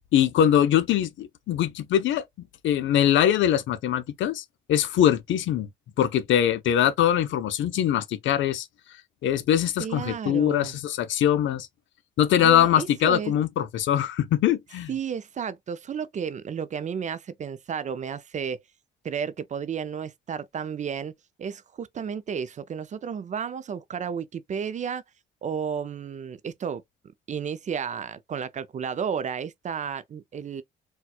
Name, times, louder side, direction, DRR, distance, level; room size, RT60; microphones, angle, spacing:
voice 1, 0.1-4.4 4.7-5.7 6.0-8.7 9.2-11.7 12.2-14.9, left 10 dB, 75° left, 0.5 m, -22 dB
voice 2, 9.8-10.8 12.4-13.3 14.9-18.6 19.0-21.1 21.4-25.0 25.4-26.8 27.3-30.6, right 7 dB, 40° right, 0.4 m, -32 dB
4.2 x 2.2 x 2.3 m
cardioid pair, 90°, 20 cm